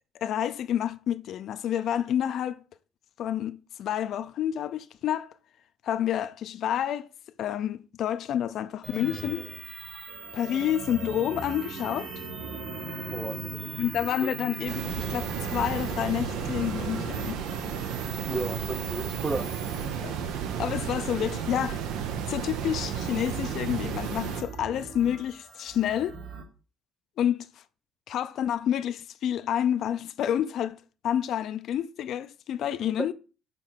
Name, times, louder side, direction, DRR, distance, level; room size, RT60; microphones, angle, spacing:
voice 1, 0.2-2.6 3.2-5.3 5.8-7.1 7.4-9.5 10.3-12.1 13.8-17.4 20.0-20.1 20.6-21.8 22.3-26.2 27.2-27.5 28.1-30.8 31.0-33.1, left 10 dB, 65° left, 0.4 m, -29 dB
sound 1, 8.8-26.4, right 3 dB, 60° right, 2.6 m, -40 dB
sound 2, 14.7-24.4, right 8 dB, 80° right, 0.8 m, -33 dB
voice 2, 18.3-19.6 33.0-33.1, right 3 dB, 20° right, 0.8 m, -32 dB
6.8 x 3.2 x 5.7 m
cardioid pair, 95°, 0 cm